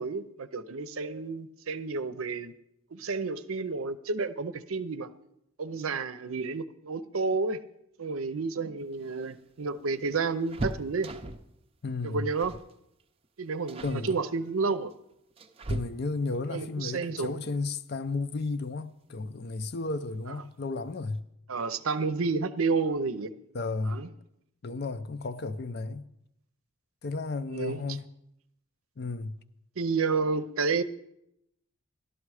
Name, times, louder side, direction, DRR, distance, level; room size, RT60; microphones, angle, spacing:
voice 1, 0.0-2.5 2.9-5.1 5.6-7.6 8.0-11.1 12.0-12.5 13.4-14.9 16.5-17.4 21.5-23.3 23.8-24.1 27.5-27.8 29.8-30.8, right 4 dB, 75° right, 0.7 m, -30 dB
sound 1, 8.9-11.6 12.4-12.7 13.0-13.3 13.7-14.1 14.9-16.4 18.1-18.2 18.6-18.7 19.8-20.3 20.6-20.7 21.0-21.2, right 2 dB, 25° right, 0.5 m, -38 dB
voice 2, 11.8-12.3 13.8-14.2 15.7-21.2 23.5-24.0 24.6-26.0 27.0-28.0 29.0-29.4, left 3 dB, 50° left, 0.5 m, -33 dB
12.5 x 12.5 x 4.8 m
head